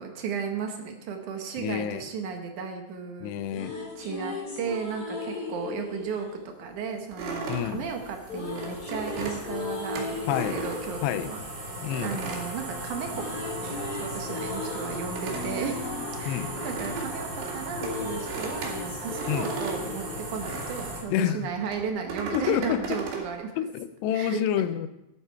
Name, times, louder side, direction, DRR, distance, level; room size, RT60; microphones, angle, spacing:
voice 1, 0.0-3.3 4.0-6.3 6.6-11.4 12.0-13.2 13.6-15.8 16.2-23.6 24.1-24.6, right 6 dB, 70° right, 4 dB, 2.0 m, -35 dB
voice 2, 1.6-2.0 3.2-3.7 7.5-7.8 10.3-10.6 11.0-11.3 11.8-12.1 16.3-16.5 19.3-19.5 21.1-21.5 22.3-23.0 23.6-24.9, left 10 dB, 90° left, 13 dB, 2.8 m, -28 dB
sound 1, 3.2-7.4 8.3-12.5 12.8-21.3, left 3 dB, 30° left, 1.9 m, -37 dB
sound 2, 6.6-21.0, right 1 dB, 35° right, 2.4 m, -38 dB
sound 3, 7.1-11.4 11.9-13.4 13.7-21.0 21.6-23.3, right 4 dB, 90° right, 4.5 m, -37 dB
12.5 x 11.0 x 4.5 m, 0.93 s
omnidirectional pair, 4.8 m